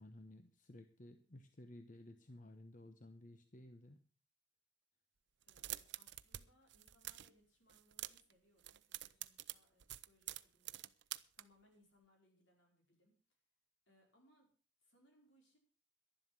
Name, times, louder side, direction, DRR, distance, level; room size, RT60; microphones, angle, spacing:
voice 1, 0.0-4.0, left 1 dB, 45° left, 8 dB, 0.9 m, -56 dB
voice 2, 5.4-10.9 11.3-13.1 13.9-14.5 14.8-15.6, equal, 70° left, 1 dB, 5.0 m, -73 dB
sound 1, 5.4-6.4 6.7-7.3 7.7-8.3 8.6-11.4, right 14 dB, 60° right, 0.6 m, -47 dB
11.5 x 11.0 x 6.0 m, 0.38 s
head